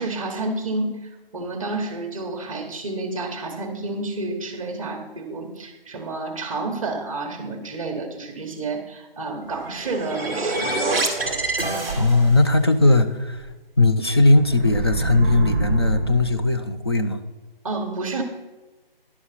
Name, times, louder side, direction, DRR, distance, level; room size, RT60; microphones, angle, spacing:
voice 1, 0.0-10.9 17.6-18.2, right 2 dB, 35° right, 2 dB, 1.1 m, -30 dB
sound 1, 9.5-12.5, right 2 dB, ahead, 1.2 m, -26 dB
voice 2, 11.9-13.5 13.8-17.2, left 2 dB, 25° left, 7 dB, 0.5 m, -18 dB
sound 2, 11.9-12.8 13.4-13.5 14.1-16.6, right 3 dB, 15° right, 0.9 m, -27 dB
11.0 x 6.3 x 5.6 m, 1.2 s
hypercardioid pair, 170°, 29 cm